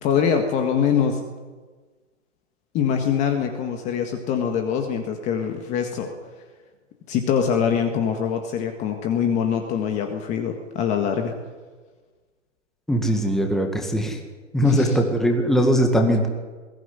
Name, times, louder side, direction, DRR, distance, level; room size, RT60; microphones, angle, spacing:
voice 1, 0.0-1.2 2.7-6.1 7.1-11.3 14.6-15.0, left 7 dB, 20° left, 5 dB, 1.7 m, -23 dB
voice 2, 12.9-14.2 14.5-16.3, equal, ahead, 3 dB, 2.0 m, -20 dB
21.0 x 16.0 x 9.8 m, 1.4 s
hypercardioid pair, 150°, 38 cm